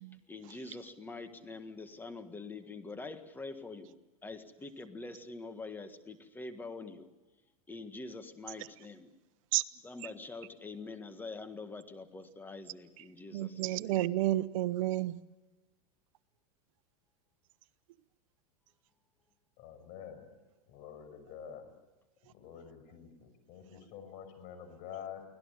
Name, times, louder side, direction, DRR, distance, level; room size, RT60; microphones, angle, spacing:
voice 1, 0.3-7.1 7.7-9.1 9.8-14.0, left 3 dB, 10° left, 9 dB, 1.7 m, -45 dB
voice 2, 13.3-15.2, right 15 dB, 60° right, 13 dB, 1.0 m, -31 dB
voice 3, 19.6-20.3 20.7-21.7 22.3-25.2, left 8 dB, 45° left, 9 dB, 6.1 m, -47 dB
24.5 x 17.0 x 10.0 m, 1.1 s
supercardioid pair, 135°, 19 cm